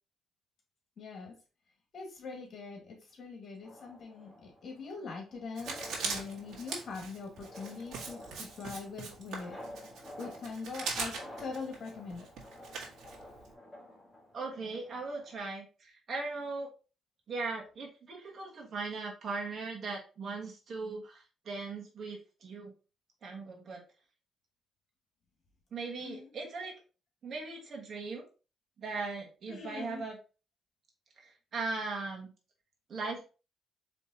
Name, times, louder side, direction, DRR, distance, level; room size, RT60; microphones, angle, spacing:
voice 1, 1.0-1.4 1.9-9.6 10.2-12.3 26.0-26.3 29.5-30.1, left 4 dB, 55° left, 1 dB, 1.8 m, -43 dB
sound 1, 3.6-15.4, left 1 dB, 10° left, 1.8 m, -51 dB
Writing, 5.6-13.5, right 4 dB, 70° right, 1.7 m, -41 dB
voice 2, 14.3-16.7 17.3-22.7 23.2-23.8 25.7-26.7 27.2-28.3 28.8-30.2 31.2-32.3 32.9-33.3, right 3 dB, 55° right, 0 dB, 1.5 m, -39 dB
4.6 x 3.4 x 2.9 m, 0.34 s
cardioid pair, 90°, 0 cm